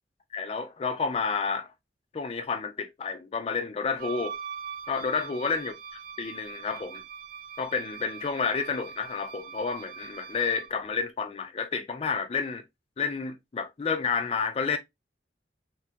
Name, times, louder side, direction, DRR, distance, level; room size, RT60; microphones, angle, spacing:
voice 1, 0.3-1.7 2.1-4.4 4.9-5.7 6.2-7.0 7.6-12.6 13.0-14.8, left 5 dB, 35° left, 0.3 m, -30 dB
Wind instrument woodwind instrument, 4.0-10.8, right 7 dB, 50° right, 0.3 m, -42 dB
3.4 x 2.2 x 2.7 m
head